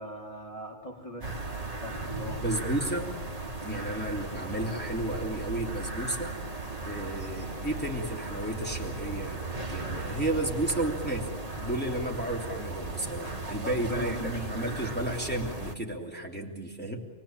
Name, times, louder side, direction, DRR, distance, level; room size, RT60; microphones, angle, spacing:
voice 1, 0.0-1.4 1.8-2.6 3.7-3.9 6.9-7.1 13.6-14.5, equal, 25° left, -2 dB, 3.2 m, -41 dB
sound 1, 1.2-15.8, right 2 dB, 25° right, 2.1 m, -36 dB
voice 2, 2.4-3.1 3.6-6.3 6.8-9.4 9.7-17.0, right 1 dB, 5° left, -1 dB, 3.1 m, -32 dB
28.0 x 19.0 x 9.0 m, 1.3 s
omnidirectional pair, 1.5 m